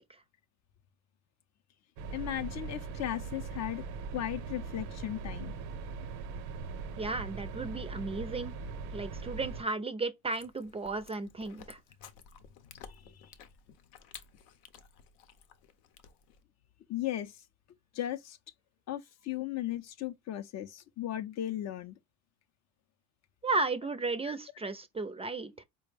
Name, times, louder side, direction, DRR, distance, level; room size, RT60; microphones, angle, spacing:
sound 1, 2.0-9.6, right 4 dB, 80° right, 0.7 m, -40 dB
voice 1, 2.1-3.8 4.1-5.5 12.6-13.3 16.9-17.4 17.9-18.4 18.9-22.0 24.3-24.4, left 13 dB, 50° left, 0.5 m, -36 dB
voice 2, 7.0-8.5 8.9-11.8 23.4-25.6, right 3 dB, 15° right, 0.4 m, -34 dB
Chewing mastication, 10.3-16.4, left 7 dB, 80° left, 0.7 m, -54 dB
4.3 x 2.1 x 3.3 m
supercardioid pair, 85°, 36 cm